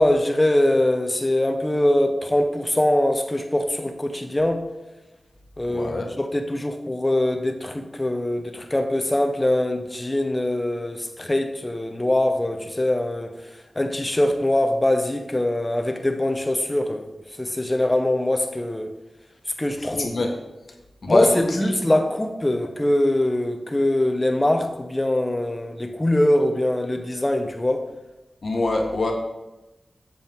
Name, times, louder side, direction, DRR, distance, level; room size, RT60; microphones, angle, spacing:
voice 1, 0.0-4.6 5.6-13.4 13.7-17.1 17.4-18.9 19.6-20.2 21.1-27.9, left 1 dB, 20° left, 6 dB, 0.9 m, -22 dB
voice 2, 5.7-6.0 20.0-20.3 21.0-21.6 28.4-29.1, left 2 dB, 60° left, 1 dB, 1.5 m, -23 dB
8.2 x 6.6 x 3.7 m, 1.0 s
wide cardioid pair, 95°, 0 cm